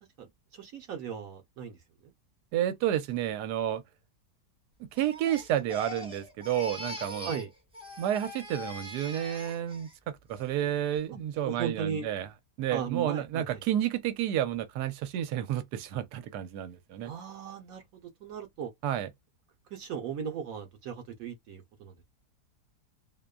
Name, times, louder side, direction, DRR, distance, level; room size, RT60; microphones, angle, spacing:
voice 1, 0.5-1.8 7.2-7.5 11.5-12.1 12.7-13.6 17.0-18.7 19.7-21.9, right 7 dB, 65° right, 1.0 m, -37 dB
voice 2, 2.5-3.8 4.8-7.3 8.0-12.3 12.6-17.1 18.8-19.1, right 11 dB, 85° right, 1.2 m, -31 dB
Crying sobbing, 5.0-7.5 7.7-9.9 10.3-10.7, left 1 dB, 5° right, 0.5 m, -42 dB
2.8 x 2.1 x 2.2 m
omnidirectional pair, 1.7 m